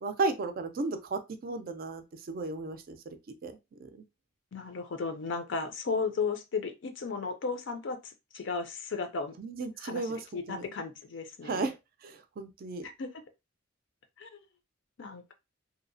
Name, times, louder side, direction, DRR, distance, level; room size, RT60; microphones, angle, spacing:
voice 1, 0.0-3.2 3.4-3.5 3.8-3.9 9.4-10.2 10.5-10.7 11.4-11.8 12.0-12.9, right 3 dB, 45° right, 0.4 m, -34 dB
voice 2, 4.5-9.3 9.8-11.7 12.8-13.1 14.2-14.4 15.0-15.3, left 4 dB, 60° left, 0.5 m, -35 dB
2.7 x 2.0 x 2.5 m
head